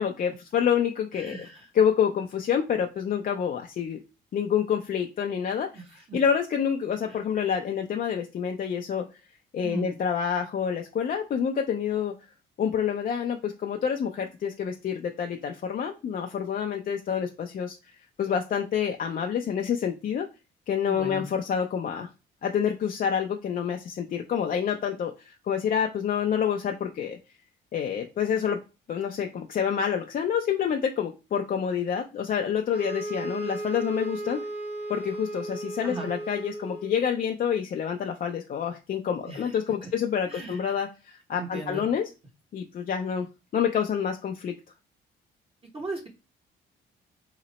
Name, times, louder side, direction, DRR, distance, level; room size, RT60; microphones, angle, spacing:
voice 1, 0.0-1.5 1.7-4.0 4.3-5.7 6.1-9.1 9.5-12.1 12.6-17.8 18.2-20.3 20.7-22.1 22.4-27.2 27.7-28.6 28.9-34.5 34.9-42.1 42.5-43.3 43.5-44.6, left 8 dB, 45° left, 3 dB, 0.4 m, -27 dB
voice 2, 1.2-1.7 5.7-6.2 7.1-7.2 9.6-9.9 20.9-21.3 35.8-36.1 39.3-39.5 39.8-39.9 40.3-40.7 41.4-41.8 45.7-46.1, right 3 dB, 30° right, 0 dB, 0.9 m, -37 dB
sound 1, 32.7-37.1, right 1 dB, 55° right, 1.4 m, -35 dB
2.9 x 2.0 x 4.0 m, 0.29 s
cardioid pair, 90°, 20 cm